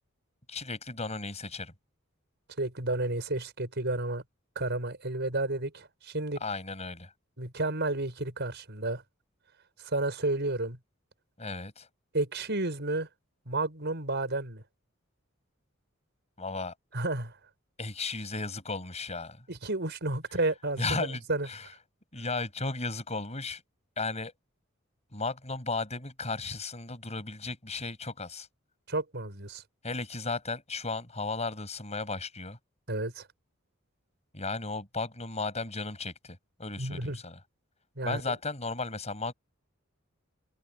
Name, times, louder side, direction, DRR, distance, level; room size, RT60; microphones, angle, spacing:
voice 1, 0.5-1.7 6.4-7.1 11.4-11.9 16.4-16.7 17.8-19.4 20.8-21.2 21.5-21.7 22.1-23.6 24.0-24.3 25.1-28.5 29.8-32.6 34.3-37.4 38.0-39.3, left 3 dB, 35° left, 7.4 m, -35 dB
voice 2, 2.6-4.2 4.6-6.4 7.4-9.0 9.8-10.8 12.1-13.1 13.5-14.6 16.9-17.3 19.5-21.5 28.9-29.6 32.9-33.3 36.8-37.2 38.0-38.2, right 2 dB, 55° right, 5.7 m, -31 dB
open air
head